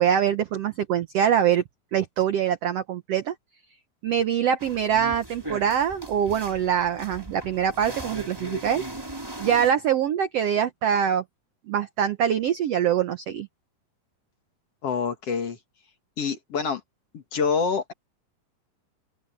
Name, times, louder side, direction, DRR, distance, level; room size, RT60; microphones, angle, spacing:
voice 1, 0.0-1.6 1.9-3.3 4.0-8.8 9.4-11.2 11.7-13.5, right 9 dB, 80° right, 1.4 m, -24 dB
sound 1, 4.6-9.7, right 1 dB, 5° right, 3.3 m, -38 dB
voice 2, 14.8-15.6 16.2-16.8 17.1-17.9, left 5 dB, 50° left, 2.6 m, -26 dB
open air
omnidirectional pair, 4.1 m